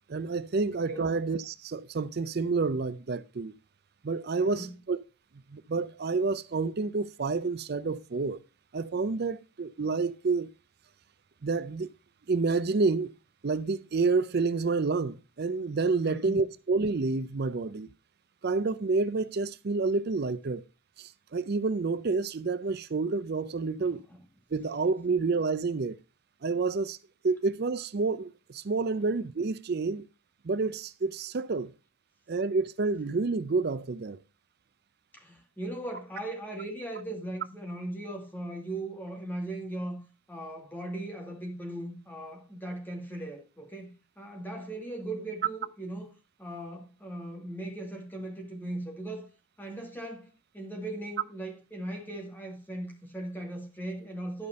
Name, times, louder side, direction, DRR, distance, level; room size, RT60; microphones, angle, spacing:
voice 1, 0.1-3.5 4.0-5.0 5.5-8.4 8.7-10.5 11.4-11.9 12.3-13.1 13.4-17.9 18.4-20.6 21.0-24.0 24.5-26.0 26.4-27.0 27.2-30.1 30.4-31.7 32.3-34.2, right 4 dB, 50° right, 0.5 m, -29 dB
voice 2, 4.4-4.7 16.0-16.4 23.8-24.2 35.1-40.0 40.3-46.1 46.4-49.3 49.6-54.5, right 1 dB, 10° left, 2.2 m, -38 dB
12.0 x 5.1 x 5.2 m
head